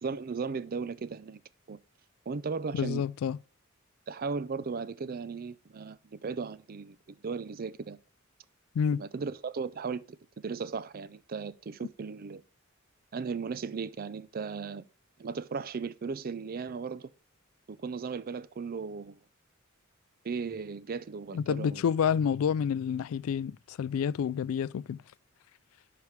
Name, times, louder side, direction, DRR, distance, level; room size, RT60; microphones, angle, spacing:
voice 1, 0.0-1.4 1.7-1.8 2.3-3.0 4.1-8.0 9.0-10.2 10.4-12.4 13.1-14.8 15.2-17.1 17.7-19.2 20.2-21.9, right 5 dB, 45° right, 0.5 m, -36 dB
voice 2, 2.7-3.4 8.7-9.0 21.3-25.0, left 7 dB, 75° left, 0.3 m, -29 dB
10.5 x 4.7 x 3.2 m
head